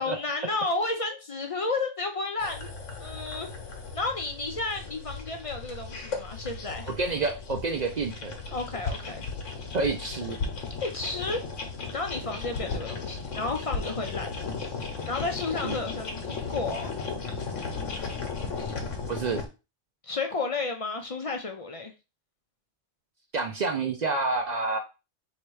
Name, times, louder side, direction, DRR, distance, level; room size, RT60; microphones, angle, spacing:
voice 1, 0.0-2.7 3.0-3.6 3.9-6.9 8.5-9.3 10.8-11.4 11.9-14.4 15.1-16.9 20.0-21.9, left 3 dB, 50° left, 5 dB, 0.4 m, -32 dB
sound 1, 2.4-19.5, left 4 dB, 90° left, 1.3 m, -35 dB
voice 2, 7.0-8.4 9.7-10.4 15.6-15.8 19.1-19.4 23.3-24.8, right 3 dB, 60° right, 5 dB, 0.4 m, -28 dB
3.2 x 2.9 x 4.6 m, 0.29 s
omnidirectional pair, 1.3 m